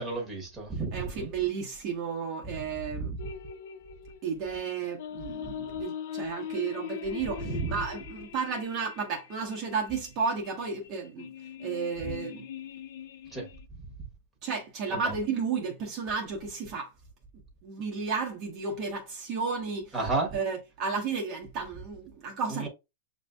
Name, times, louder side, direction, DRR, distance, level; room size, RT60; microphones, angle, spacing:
voice 1, 0.0-1.3 3.0-3.2 7.4-7.7 12.0-12.1 13.3-13.5 14.9-15.1 19.9-20.3 22.5-22.7, right 3 dB, 5° right, 1.3 m, -32 dB
voice 2, 0.9-3.1 4.2-11.3 11.6-12.4 14.4-16.9 17.6-20.0 20.3-22.7, right 5 dB, 30° right, 0.9 m, -33 dB
sound 1, 3.2-13.7, left 9 dB, 55° left, 0.5 m, -41 dB
7.0 x 2.6 x 2.2 m
supercardioid pair, 165°, 0 cm